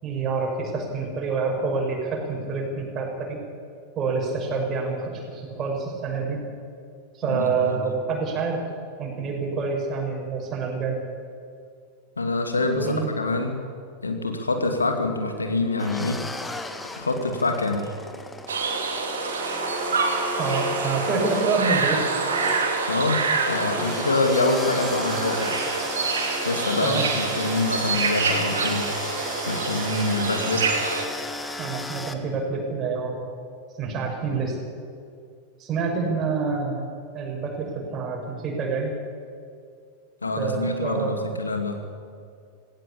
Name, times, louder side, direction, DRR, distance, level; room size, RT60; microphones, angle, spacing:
voice 1, 0.0-3.4 4.0-6.4 7.1-8.6 9.0-11.0 12.7-13.1 20.4-22.0 26.8-27.0 31.6-33.2 33.8-34.6 35.6-36.9 37.1-39.0 40.4-41.3, right 4 dB, 30° right, -1 dB, 6.3 m, -27 dB
voice 2, 7.3-7.8 12.2-13.5 14.0-16.2 16.9-17.9 22.9-23.2 23.5-25.6 26.4-28.9 29.4-30.7 40.2-41.8, left 2 dB, 75° left, 5 dB, 2.5 m, -25 dB
sound 1, 15.8-32.1, left 2 dB, 10° left, 1.5 m, -35 dB
sound 2, 18.5-31.0, right 4 dB, 65° right, 3.0 m, -27 dB
17.5 x 17.0 x 8.6 m, 2.3 s
figure-of-eight pair, 90°, 0 cm